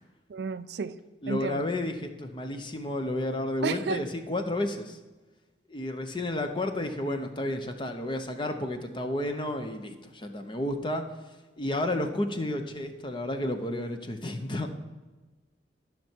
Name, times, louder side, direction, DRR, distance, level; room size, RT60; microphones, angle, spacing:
voice 1, 0.3-1.0 1.3-1.6 3.6-4.0, right 5 dB, 65° right, 0.4 m, -31 dB
voice 2, 1.2-5.0 5.7-11.0 11.6-14.7, left 1 dB, 25° left, 0.8 m, -31 dB
13.5 x 5.9 x 4.5 m
head